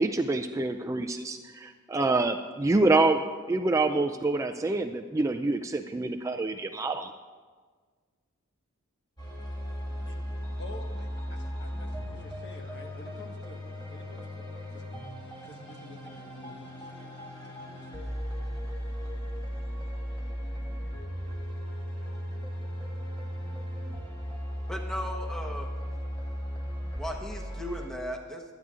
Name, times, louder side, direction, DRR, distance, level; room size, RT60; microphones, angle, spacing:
voice 1, 0.0-3.2 3.5-7.1, right 2 dB, 15° right, 6 dB, 0.3 m, -26 dB
sound 1, 9.2-27.9, equal, 20° left, 2.4 m, -36 dB
voice 2, 10.6-14.8 15.4-17.1 17.5-18.2, left 1 dB, 55° left, 2 dB, 1.4 m, -49 dB
voice 3, 24.7-25.7 26.9-28.4, equal, 5° left, 1 dB, 1.0 m, -36 dB
24.0 x 9.5 x 2.5 m, 1.5 s
head